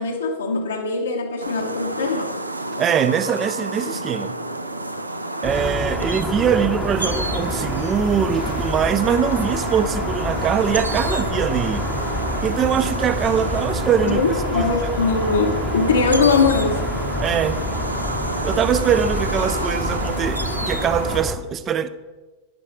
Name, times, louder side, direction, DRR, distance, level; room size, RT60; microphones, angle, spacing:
voice 1, 0.0-2.3 14.1-16.9, left 4 dB, 70° left, 1.0 m, -21 dB
sound 1, 1.4-21.2, right 1 dB, 85° right, 0.6 m, -29 dB
voice 2, 2.8-4.3 5.4-11.8 12.4-14.2 14.5-14.6 17.2-17.6 18.4-20.4 20.7-21.9, right 8 dB, 25° right, 0.6 m, -22 dB
sound 2, 5.4-21.4, left 1 dB, ahead, 0.9 m, -28 dB
11.0 x 10.0 x 3.2 m
figure-of-eight pair, 90°, 0 cm